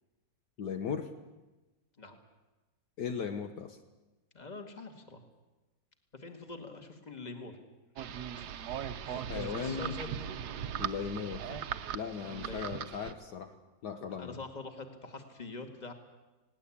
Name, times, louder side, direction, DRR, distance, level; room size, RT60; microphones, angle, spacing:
voice 1, 0.6-1.1 3.0-3.8 9.3-10.0 10.8-11.4 11.9-13.5 13.8-14.5, left 6 dB, 65° left, 7 dB, 1.5 m, -37 dB
voice 2, 4.3-5.2 6.1-7.6 8.4-8.5 9.0-10.1 11.5-11.6 12.2-12.7 14.0-15.9, left 3 dB, 20° left, 6 dB, 2.1 m, -45 dB
sound 1, 8.0-13.1, right 9 dB, 65° right, 1.3 m, -39 dB
20.5 x 17.5 x 8.6 m, 1.1 s
omnidirectional pair, 2.0 m